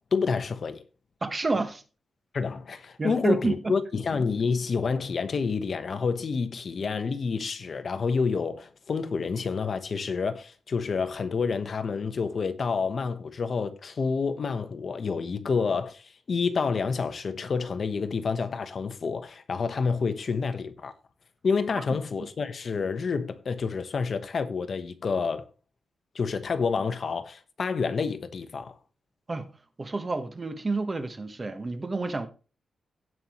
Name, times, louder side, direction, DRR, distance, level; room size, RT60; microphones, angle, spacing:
voice 1, 0.1-0.8 2.3-20.9 21.4-25.5 26.1-28.8, left 5 dB, 50° left, 1.2 m, -28 dB
voice 2, 1.2-1.8 3.0-3.7 29.3-29.5 29.8-32.3, right 3 dB, 25° right, 1.3 m, -29 dB
17.0 x 5.7 x 3.1 m
wide cardioid pair, 125°, 0 cm